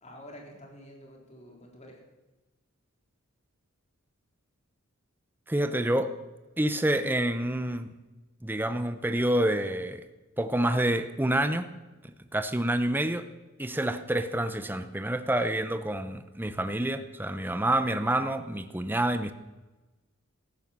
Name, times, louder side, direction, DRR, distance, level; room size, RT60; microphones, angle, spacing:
voice 1, 0.0-2.0, equal, 30° left, 0 dB, 3.8 m, -48 dB
voice 2, 5.5-6.1 6.6-7.9 8.4-10.1 10.4-11.7 12.3-13.3 13.6-19.3, right 1 dB, 10° right, 9 dB, 0.7 m, -28 dB
14.0 x 11.0 x 7.4 m, 1.1 s
head